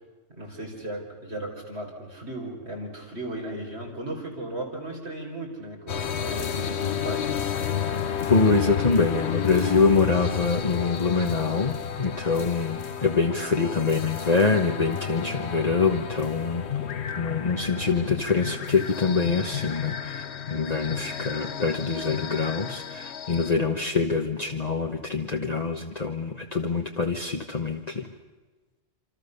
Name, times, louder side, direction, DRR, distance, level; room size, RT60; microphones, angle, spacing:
voice 1, 0.3-7.4, right 1 dB, 65° right, -1 dB, 5.3 m, -36 dB
sound 1, 5.9-23.5, left 8 dB, 65° left, 1.2 m, -31 dB
voice 2, 8.3-16.6 17.2-28.1, left 4 dB, 35° left, 2 dB, 1.4 m, -25 dB
27.0 x 26.5 x 6.8 m, 1.2 s
omnidirectional pair, 1.2 m